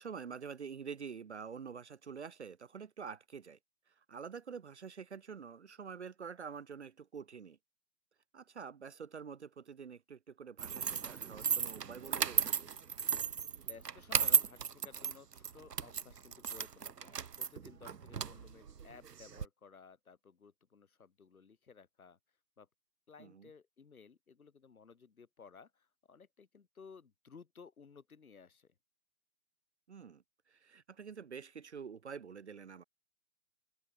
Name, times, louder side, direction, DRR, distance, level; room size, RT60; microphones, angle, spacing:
voice 1, 0.0-3.6 3.9-7.6 8.3-12.7 23.2-23.5 29.9-32.8, right 6 dB, 40° right, 1.0 m, -47 dB
sound 1, 10.6-19.4, right 7 dB, 70° right, 1.0 m, -35 dB
voice 2, 13.7-22.2 22.6-22.7 23.1-28.7, left 5 dB, 55° left, 3.4 m, -57 dB
figure-of-eight pair, 145°, 50 cm